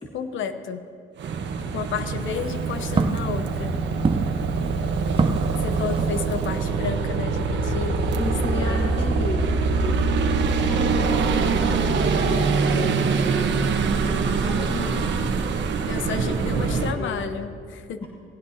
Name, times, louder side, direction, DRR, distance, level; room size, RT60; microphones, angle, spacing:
voice 1, 0.1-0.8 1.7-3.8 5.6-8.2 8.5-9.0 14.7-15.1 15.9-18.1, left 6 dB, 75° left, 9 dB, 0.9 m, -32 dB
sound 1, 1.2-16.9, right 4 dB, 65° right, 1.2 m, -24 dB
Walk footsteps, 2.1-6.7, right 4 dB, 25° right, 0.8 m, -28 dB
voice 2, 8.2-9.5 9.8-10.1 10.5-13.5 14.0-15.0 16.2-17.3 18.0-18.1, left 1 dB, 25° left, -1 dB, 1.5 m, -34 dB
19.5 x 16.5 x 2.9 m, 2.4 s
cardioid pair, 90°, 20 cm